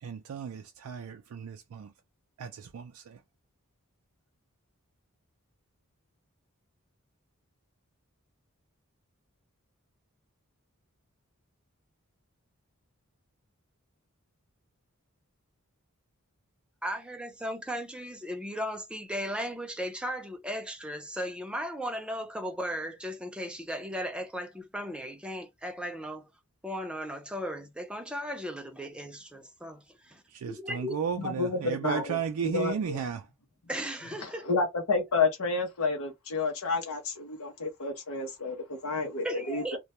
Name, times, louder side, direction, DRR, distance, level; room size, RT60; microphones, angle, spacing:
voice 1, 0.0-1.9 2.4-3.2 30.3-33.3, right 6 dB, 80° right, 0.4 m, -34 dB
voice 2, 16.8-26.3 26.6-31.0 33.7-34.7 39.2-39.8, equal, 5° right, 0.5 m, -36 dB
voice 3, 31.2-32.1 32.4-33.0 34.2-39.8, left 4 dB, 75° left, 0.7 m, -30 dB
2.2 x 2.1 x 2.8 m
head